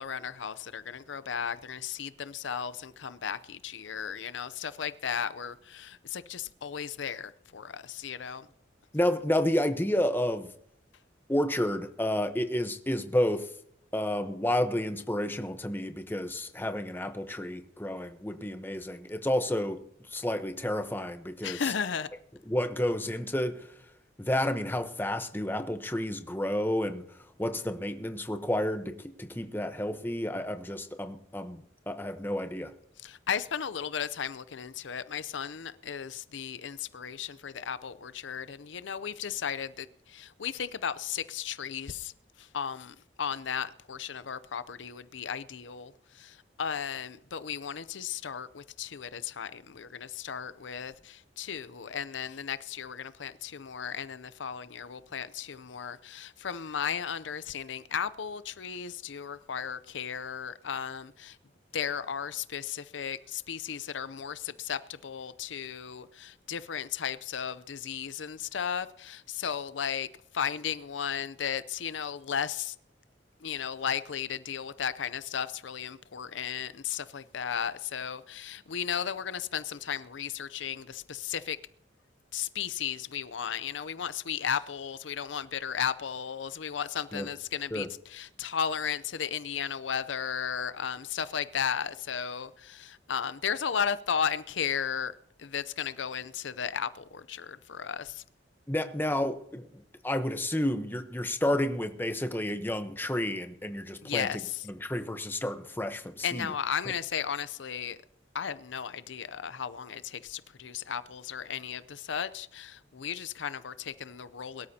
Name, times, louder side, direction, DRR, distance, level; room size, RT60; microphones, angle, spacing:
voice 1, 0.0-8.5 21.4-22.1 33.0-42.1 42.4-61.4 61.7-70.1 70.3-72.8 73.4-81.6 82.3-95.1 95.4-98.2 104.0-104.6 106.2-108.0 108.3-114.7, left 7 dB, 85° left, 0.6 m, -35 dB
voice 2, 8.9-10.5 11.3-13.5 13.9-19.8 20.1-21.7 22.5-23.7 24.2-27.0 27.4-32.7 87.1-87.3 87.7-87.9 98.7-104.4 104.7-106.5, left 1 dB, 10° left, 0.9 m, -30 dB
22.5 x 12.5 x 2.8 m
head